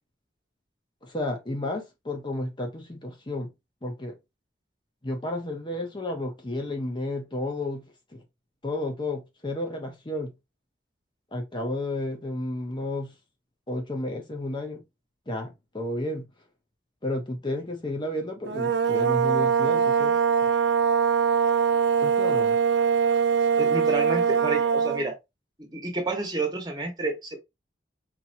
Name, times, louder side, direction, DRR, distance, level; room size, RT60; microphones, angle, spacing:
voice 1, 1.0-3.5 3.8-4.1 5.0-7.8 8.1-8.2 8.6-10.3 11.3-13.1 13.7-14.8 15.3-16.3 17.0-20.5 22.0-22.5, left 1 dB, 25° left, 0.8 m, -32 dB
sound 1, 18.5-25.1, right 7 dB, 75° right, 0.4 m, -22 dB
voice 2, 23.6-25.1 25.6-27.4, right 2 dB, 25° right, 1.5 m, -30 dB
4.2 x 3.0 x 2.7 m
head